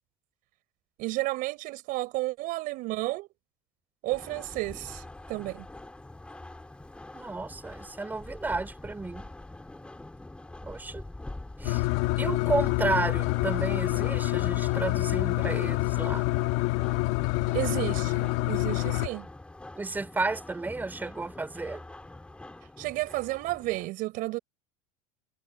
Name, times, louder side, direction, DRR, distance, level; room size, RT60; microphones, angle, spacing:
voice 1, 1.0-3.3 4.0-5.7 17.5-19.3 22.8-24.4, right 20 dB, 55° right, 6.7 m, -32 dB
sound 1, 4.1-23.9, left 2 dB, 5° left, 5.0 m, -45 dB
voice 2, 7.1-9.3 10.6-11.0 11.6-11.8 12.2-16.3 19.8-21.8, right 3 dB, 10° right, 4.5 m, -32 dB
sound 2, 11.6-19.1, left 21 dB, 65° left, 2.7 m, -27 dB
supercardioid pair, 145°, 17 cm